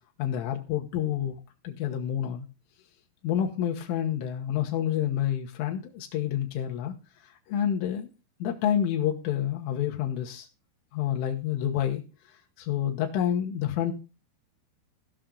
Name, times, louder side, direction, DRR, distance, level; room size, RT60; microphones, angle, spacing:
voice 1, 0.2-2.5 3.2-7.0 7.5-8.1 8.4-10.5 10.9-12.0 12.6-13.9, left 10 dB, 80° left, 2 dB, 3.7 m, -28 dB
17.0 x 5.9 x 3.8 m, 0.31 s
omnidirectional pair, 5.6 m